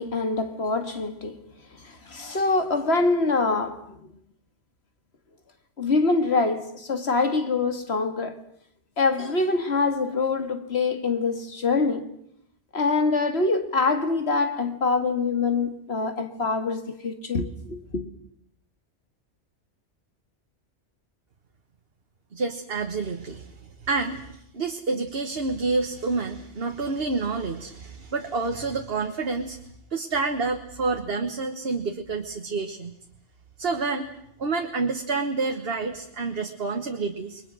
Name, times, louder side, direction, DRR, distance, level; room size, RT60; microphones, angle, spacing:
voice 1, 0.0-1.4 1.8-4.0 5.8-8.4 9.0-12.1 12.7-18.0, left 3 dB, 60° left, 2.1 m, -25 dB
voice 2, 22.3-23.5 23.9-29.6 29.9-33.0 33.6-34.1 34.4-37.4, right 3 dB, 55° right, 1.5 m, -28 dB
29.0 x 22.0 x 6.3 m
omnidirectional pair, 1.2 m